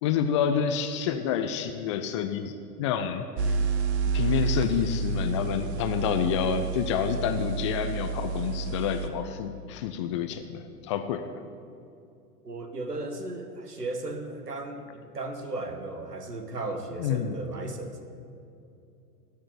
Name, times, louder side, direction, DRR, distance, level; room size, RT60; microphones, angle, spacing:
voice 1, 0.0-2.5 2.8-3.6 4.1-11.2 17.0-17.4, left 8 dB, 20° left, 8 dB, 0.4 m, -28 dB
sound 1, 3.4-9.1, right 4 dB, 45° right, 1.0 m, -29 dB
voice 2, 12.4-18.0, right 2 dB, 80° right, 7 dB, 1.6 m, -36 dB
16.0 x 6.6 x 8.2 m, 2.6 s
figure-of-eight pair, 95°, 46 cm